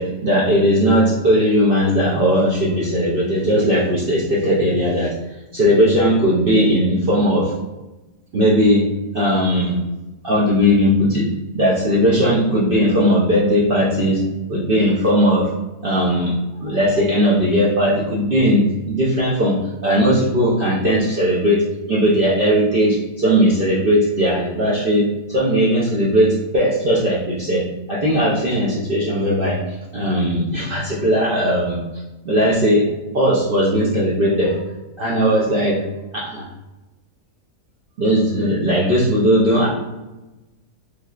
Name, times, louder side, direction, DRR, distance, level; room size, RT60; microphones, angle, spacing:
voice 1, 0.0-5.1 5.5-7.5 8.3-8.9 9.1-9.8 10.2-11.3 11.5-14.2 14.5-15.5 15.8-16.3 16.6-19.6 19.8-29.6 29.9-31.8 32.2-32.9 33.1-34.6 35.0-35.8 36.1-36.5 38.0-39.7, equal, 80° right, -7 dB, 0.5 m, -18 dB
3.3 x 2.7 x 2.3 m, 1.0 s
omnidirectional pair, 1.7 m